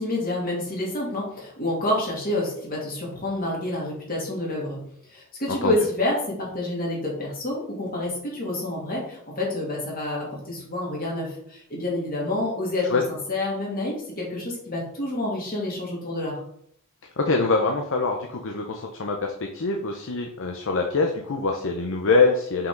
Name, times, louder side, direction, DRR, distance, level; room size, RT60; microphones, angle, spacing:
voice 1, 0.0-4.8 5.1-16.4, left 1 dB, 40° left, -3 dB, 2.4 m, -28 dB
voice 2, 17.2-22.7, left 3 dB, 60° left, 3 dB, 0.7 m, -24 dB
5.8 x 5.1 x 3.8 m, 0.68 s
head